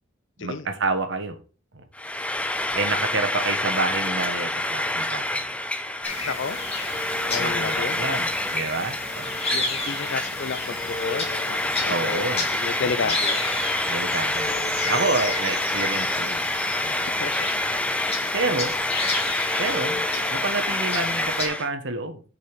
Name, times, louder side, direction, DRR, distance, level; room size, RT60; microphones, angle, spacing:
voice 1, 0.4-1.4 1.7-1.8 2.7-5.5 7.4-9.4 11.9-12.5 12.8-13.2 13.9-16.5 16.8-17.1 18.3-18.7 19.6-20.0 20.3-22.2, right 3 dB, 65° right, 1.4 m, -29 dB
Frying (food), 1.9-21.7, left 1 dB, 5° left, 0.6 m, -27 dB
sound 1, 6.0-21.5, left 3 dB, 30° left, 2.0 m, -32 dB
voice 2, 6.3-6.6 7.3-8.1 9.5-12.3 12.6-13.5 17.2-17.5, left 5 dB, 65° left, 0.6 m, -31 dB
6.9 x 5.4 x 5.2 m
head